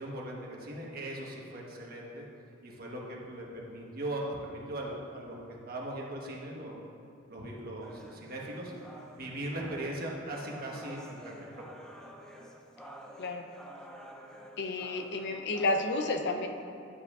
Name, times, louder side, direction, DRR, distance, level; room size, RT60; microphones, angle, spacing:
voice 1, 0.0-2.3 2.6-6.8 7.3-8.7 9.2-11.6, right 1 dB, 50° right, -2 dB, 1.2 m, -39 dB
sound 1, 7.8-15.8, equal, 5° left, 0.5 m, -50 dB
voice 2, 14.6-16.5, left 2 dB, 60° left, 4 dB, 0.6 m, -31 dB
11.5 x 7.5 x 2.4 m, 2.4 s
head